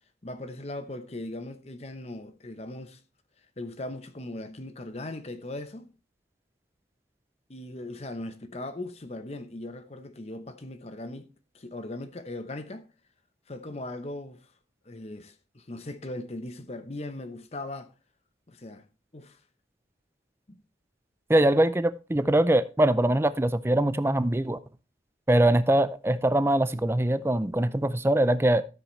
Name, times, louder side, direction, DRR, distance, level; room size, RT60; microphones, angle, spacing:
voice 1, 0.2-3.0 3.6-5.9 7.5-11.3 11.5-12.9 13.5-14.5 14.8-17.9 18.5-18.8 19.1-19.4 20.5-20.6, left 2 dB, 35° left, 0.8 m, -39 dB
voice 2, 21.3-24.6 25.3-28.6, right 1 dB, 15° right, 0.5 m, -23 dB
13.0 x 7.7 x 3.2 m
head